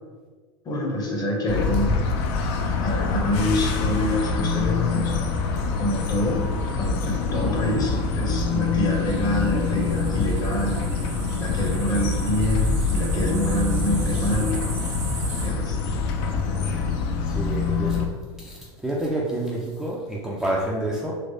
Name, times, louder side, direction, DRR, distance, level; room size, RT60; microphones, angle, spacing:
voice 1, 0.6-1.9 2.8-5.4 5.8-6.5 6.8-10.8 11.4-14.6 15.4-15.8, equal, 25° left, 0 dB, 0.8 m, -26 dB
sound 1, 1.5-18.1, left 4 dB, 55° left, 0.5 m, -25 dB
sound 2, 9.1-15.5, right 3 dB, 85° right, 1.1 m, -38 dB
voice 2, 17.2-18.1 18.4-21.1, right 1 dB, ahead, -5 dB, 0.4 m, -28 dB
3.4 x 3.1 x 2.7 m, 1.5 s
hypercardioid pair, 100°, 15 cm